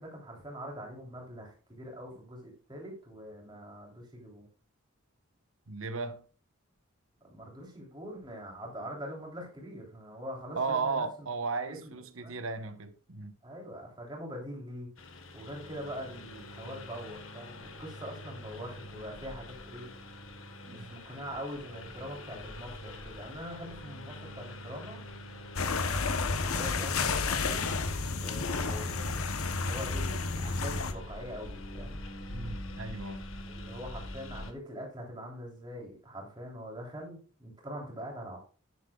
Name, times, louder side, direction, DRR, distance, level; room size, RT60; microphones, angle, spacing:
voice 1, 0.0-4.5 7.2-11.3 11.6-11.9 12.2-12.4 13.4-14.9 15.3-19.9 20.7-25.1 26.4-27.6 28.2-29.2 29.6-32.0 33.5-38.4, equal, 20° right, 3.4 m, -43 dB
voice 2, 5.7-6.2 10.5-13.3 20.6-21.0 27.9-28.1 32.3-33.3, right 4 dB, 75° right, 1.2 m, -35 dB
Engine, 15.0-34.5, left 1 dB, 75° left, 1.4 m, -45 dB
sound 1, 25.6-30.9, left 4 dB, 90° left, 1.0 m, -31 dB
10.0 x 9.9 x 2.4 m
head